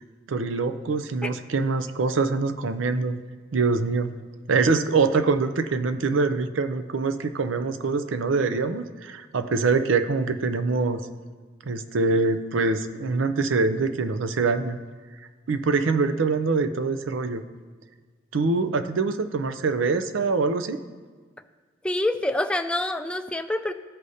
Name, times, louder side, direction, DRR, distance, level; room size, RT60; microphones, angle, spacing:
voice 1, 0.3-3.2 3.5-4.1 4.5-11.0 11.7-14.8 15.5-17.4 18.3-20.8, right 4 dB, 85° right, 10 dB, 0.5 m, -24 dB
voice 2, 21.8-23.7, left 1 dB, 5° left, 8 dB, 0.3 m, -26 dB
14.5 x 4.9 x 2.7 m, 1.5 s
head